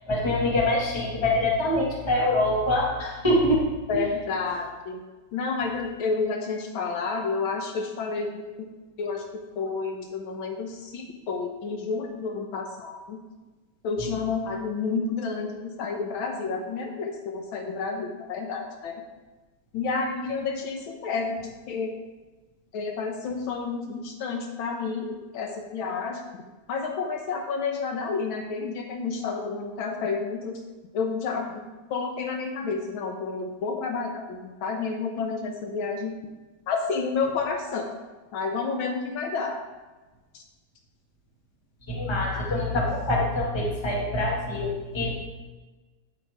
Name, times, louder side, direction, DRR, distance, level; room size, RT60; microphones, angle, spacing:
voice 1, 0.1-3.6 3.9-4.0 41.9-45.1, left 1 dB, 15° left, -3 dB, 1.6 m, -24 dB
voice 2, 3.9-5.0 5.3-8.4 9.0-9.2 9.6-13.2 13.8-19.0 19.7-21.9 22.7-26.2 26.7-30.6 30.9-31.6 31.9-36.1 36.7-37.9 38.3-39.6 40.3-40.4 42.3-42.6, left 4 dB, 85° left, 3 dB, 1.7 m, -30 dB
9.9 x 8.1 x 3.5 m, 1.2 s
omnidirectional pair, 2.2 m